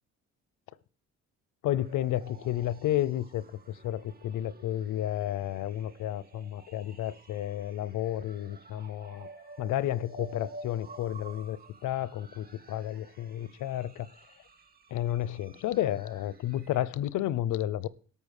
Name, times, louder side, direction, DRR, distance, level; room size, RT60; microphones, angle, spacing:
voice 1, 1.6-9.3 9.6-14.1 14.9-17.9, left 12 dB, 80° left, 20 dB, 0.7 m, -31 dB
sound 1, 1.8-16.8, right 2 dB, 30° right, 1.9 m, -52 dB
12.5 x 6.9 x 6.6 m, 0.44 s
cardioid pair, 90°, 30 cm